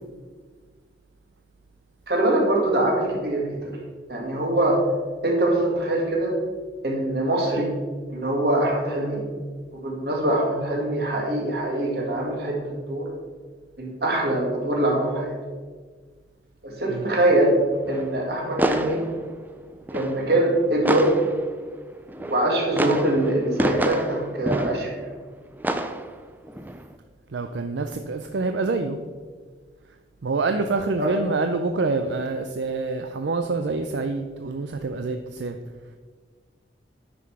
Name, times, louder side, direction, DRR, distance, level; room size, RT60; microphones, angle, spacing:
voice 1, 2.1-3.8 4.1-4.8 5.2-6.3 6.8-7.7 8.1-9.2 9.7-13.1 13.8-15.4 16.6-17.6 17.9-19.0 19.9-21.1 22.1-24.9 31.0-31.1, right 1 dB, 60° right, -1 dB, 2.1 m, -23 dB
sound 1, 17.6-21.7 22.1-25.2 25.6-26.9, right 1 dB, 10° right, 0.4 m, -28 dB
voice 2, 27.3-29.0 30.2-35.6, right 3 dB, 80° right, 7 dB, 0.5 m, -26 dB
9.7 x 5.9 x 4.8 m, 1.5 s
head